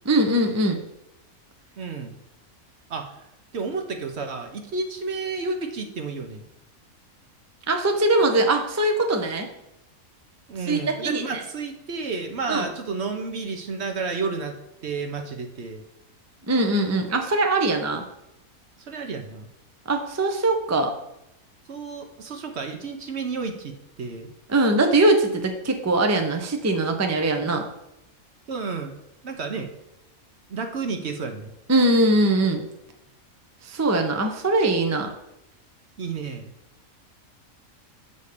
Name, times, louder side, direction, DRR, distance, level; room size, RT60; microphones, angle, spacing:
voice 1, 0.1-0.8 7.7-9.5 10.7-11.2 12.5-12.6 16.5-18.0 19.9-20.9 24.5-27.6 31.7-32.6 33.6-35.1, right 2 dB, 15° right, 4 dB, 0.5 m, -21 dB
voice 2, 1.8-2.2 2.9-3.2 3.5-6.4 10.5-15.8 18.8-19.5 21.7-24.3 28.5-29.0 29.2-29.7 30.5-31.5 36.0-36.5, right 4 dB, 55° right, 5 dB, 1.1 m, -31 dB
6.9 x 4.1 x 6.6 m, 0.85 s
omnidirectional pair, 1.5 m